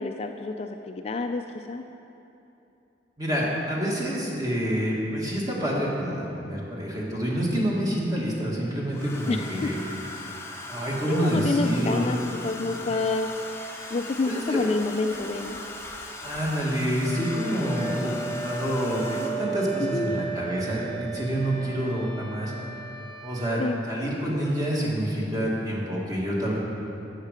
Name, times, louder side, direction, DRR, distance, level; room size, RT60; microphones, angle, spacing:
voice 1, 0.0-1.4 1.7-1.8 9.3-9.7 11.1-12.2 12.4-13.3 13.9-15.6 19.8-20.2 23.6-23.8, left 3 dB, 35° left, 5 dB, 0.4 m, -28 dB
voice 2, 3.2-9.8 10.7-12.1 14.3-14.6 16.2-22.5 23.2-26.6, equal, 20° right, -4 dB, 1.8 m, -27 dB
Domestic sounds home sounds, 8.9-19.7 20.9-21.2 21.4-21.8, left 2 dB, 15° left, 0.8 m, -39 dB
Wind instrument woodwind instrument, 17.0-23.6, right 5 dB, 65° right, 1.8 m, -35 dB
14.5 x 6.5 x 5.1 m, 2.9 s
head